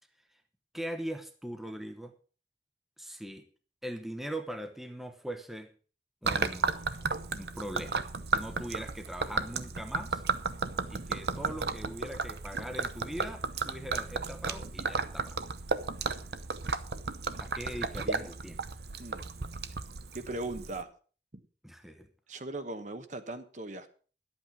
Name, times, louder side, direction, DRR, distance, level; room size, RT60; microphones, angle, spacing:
voice 1, 0.7-2.1 3.0-3.5 3.8-5.7 6.2-6.7 7.4-8.0 8.3-10.2 10.9-15.4 17.4-18.6 21.6-22.1, right 1 dB, ahead, 6 dB, 1.0 m, -41 dB
Gurgling / Liquid, 6.2-20.8, right 4 dB, 70° right, 0.9 m, -34 dB
voice 2, 20.1-20.9 21.3-21.4 22.3-23.9, right 2 dB, 45° right, 9 dB, 1.1 m, -38 dB
12.0 x 8.5 x 6.0 m, 0.40 s
head